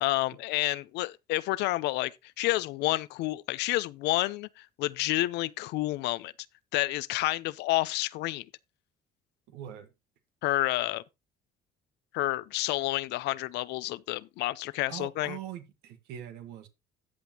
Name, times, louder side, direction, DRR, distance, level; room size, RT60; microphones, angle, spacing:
voice 1, 0.0-2.1 2.4-6.3 6.7-8.4 10.4-11.0 12.1-15.4, left 18 dB, 85° left, 0.6 m, -29 dB
voice 2, 9.5-9.9 14.9-16.7, right 10 dB, 90° right, 1.4 m, -42 dB
13.5 x 7.9 x 2.9 m
cardioid pair, 110°, 17 cm